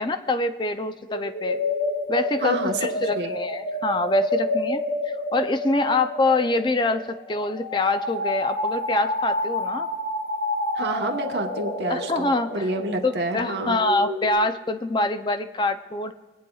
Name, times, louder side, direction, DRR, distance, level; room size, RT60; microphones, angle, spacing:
voice 1, 0.0-1.6 2.1-9.9 11.9-12.7 13.0-16.1, left 2 dB, 25° left, 9 dB, 0.4 m, -25 dB
sound 1, 1.1-14.3, left 1 dB, 75° left, 3.9 m, -29 dB
voice 2, 2.4-3.3 10.7-13.8, right 2 dB, 75° right, 3 dB, 1.1 m, -29 dB
23.5 x 9.2 x 2.3 m, 1.3 s
head